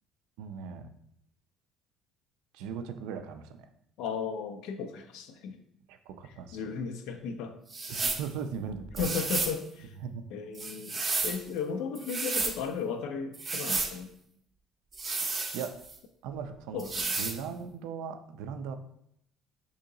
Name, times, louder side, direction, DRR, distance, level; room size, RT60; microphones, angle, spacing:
voice 1, 0.4-0.9 2.5-3.7 5.9-6.7 7.9-9.2 10.0-10.2 15.5-15.7 16.2-16.8 17.2-18.8, right 6 dB, 80° right, 8 dB, 0.3 m, -38 dB
voice 2, 4.0-5.6 6.2-7.6 9.0-10.0 10.3-14.1 16.7-17.1, left 6 dB, 80° left, 6 dB, 0.3 m, -35 dB
sound 1, 7.7-8.3 8.9-9.6 10.5-11.4 11.9-12.6 13.3-13.9 14.9-16.0 16.8-17.4, right 3 dB, 30° right, 0.6 m, -32 dB
2.8 x 2.7 x 3.8 m, 0.74 s
supercardioid pair, 85°, 0 cm